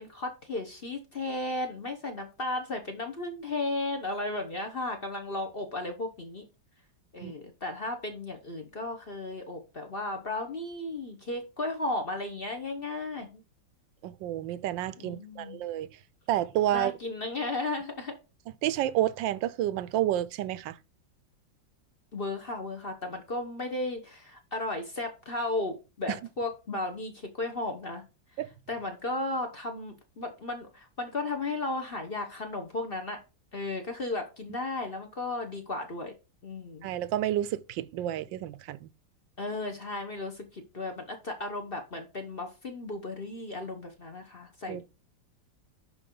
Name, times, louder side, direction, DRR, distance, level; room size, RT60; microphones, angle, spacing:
voice 1, 0.0-6.4 7.1-13.4 15.0-15.6 16.7-18.1 22.1-28.0 28.7-33.2 33.5-36.1 36.4-36.9 39.4-44.8, left 2 dB, 35° left, 1.1 m, -35 dB
voice 2, 14.0-15.9 16.3-16.9 18.6-20.8 26.1-26.2 28.4-28.5 36.8-38.9 44.7-44.8, right 13 dB, 80° right, 1.3 m, -30 dB
11.0 x 4.8 x 3.8 m
omnidirectional pair, 2.0 m